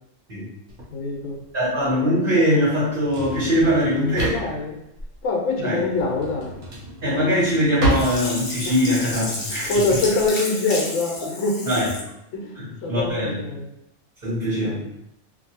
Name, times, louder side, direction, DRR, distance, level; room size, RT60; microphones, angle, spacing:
Drawer open or close, 0.7-10.3, right 2 dB, 75° right, 1.0 m, -31 dB
voice 1, 0.9-1.4 4.3-4.8 5.2-6.6 8.6-8.7 9.7-11.7 12.3-12.5 12.8-13.7 14.6-14.8, left 3 dB, 75° left, 0 dB, 0.9 m, -24 dB
voice 2, 1.5-4.4 5.6-5.8 7.0-9.7 11.6-11.9 12.5-13.4 14.2-14.8, equal, 40° right, -10 dB, 1.2 m, -22 dB
Sink (filling or washing), 7.9-12.1 12.5-12.6, left 2 dB, 50° left, 0.9 m, -31 dB
2.6 x 2.5 x 2.7 m, 0.83 s
omnidirectional pair, 1.3 m